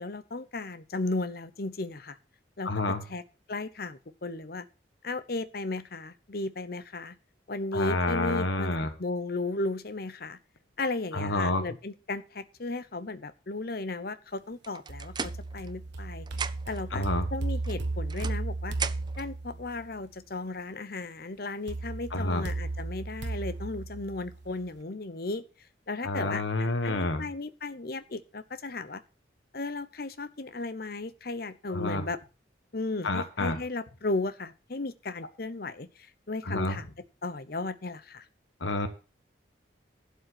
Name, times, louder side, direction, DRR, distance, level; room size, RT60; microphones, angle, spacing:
voice 1, 0.0-2.2 2.6-2.7 3.1-3.2 3.5-4.7 5.0-7.2 7.5-10.4 10.8-18.8 19.2-25.4 25.9-29.0 29.5-32.2 32.7-36.9 37.2-38.2, left 2 dB, 55° left, 13 dB, 0.9 m, -35 dB
voice 2, 2.6-3.0 7.7-8.9 11.1-11.6 16.9-17.3 22.1-22.4 26.0-27.3 31.7-32.0 33.0-33.6 36.4-36.8 38.6-38.9, left 2 dB, 80° left, 8 dB, 1.3 m, -29 dB
sound 1, 14.6-16.0 16.3-16.9 17.6-19.3, right 6 dB, 25° right, 0.5 m, -37 dB
sound 2, 14.9-19.9 21.7-24.7, right 2 dB, 70° right, 1.2 m, -35 dB
11.5 x 5.5 x 7.7 m, 0.34 s
head